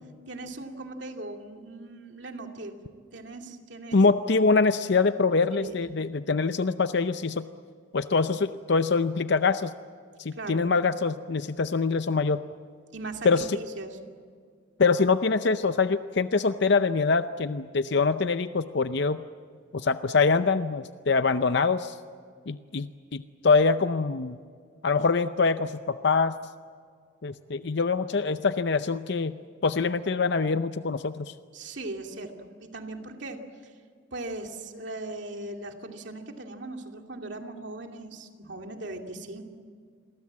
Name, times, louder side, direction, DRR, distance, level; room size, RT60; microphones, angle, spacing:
voice 1, 0.3-2.8 3.1-4.0 5.5-5.7 10.3-10.7 12.9-14.0 31.5-33.7 34.1-39.4, right 2 dB, 60° right, 3 dB, 2.7 m, -39 dB
voice 2, 3.9-7.5 7.9-9.7 10.2-12.4 13.2-13.6 14.8-19.2 19.7-22.0 22.5-24.4 24.8-26.3 27.2-29.4 29.6-31.3, left 4 dB, 60° left, 11 dB, 0.6 m, -24 dB
28.5 x 23.0 x 7.5 m, 2.1 s
head